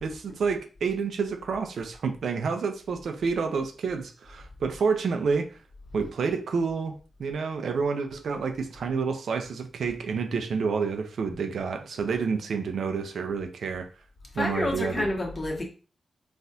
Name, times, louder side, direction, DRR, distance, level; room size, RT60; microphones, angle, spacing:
voice 1, 0.0-5.6 5.9-13.9 14.3-15.1, right 5 dB, 80° right, 0.5 m, -29 dB
voice 2, 14.4-15.6, left 1 dB, 40° left, 1.2 m, -28 dB
4.1 x 2.5 x 2.7 m
cardioid pair, 50°, 0 cm